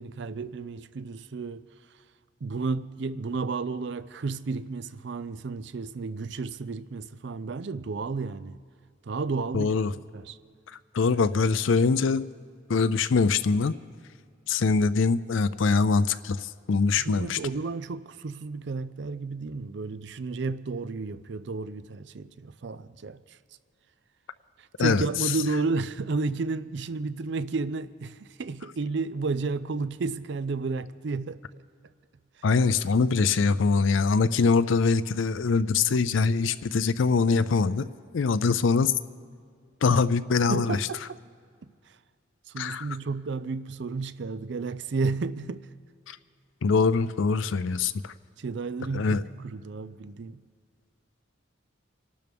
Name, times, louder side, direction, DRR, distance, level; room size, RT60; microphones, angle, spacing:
voice 1, 0.0-1.7 2.4-8.6 9.0-9.7 10.1-10.4 17.0-23.4 24.8-31.4 39.9-40.0 40.5-41.2 42.5-45.7 48.4-50.4, right 4 dB, 60° right, 0.5 m, -32 dB
voice 2, 9.5-9.9 10.9-12.2 12.7-13.8 14.5-17.4 24.8-25.3 32.4-37.9 38.1-38.9 39.8-40.8 42.6-42.9 46.1-46.2 46.6-48.1 48.9-49.2, left 4 dB, 75° left, 0.4 m, -23 dB
27.0 x 12.5 x 3.5 m
head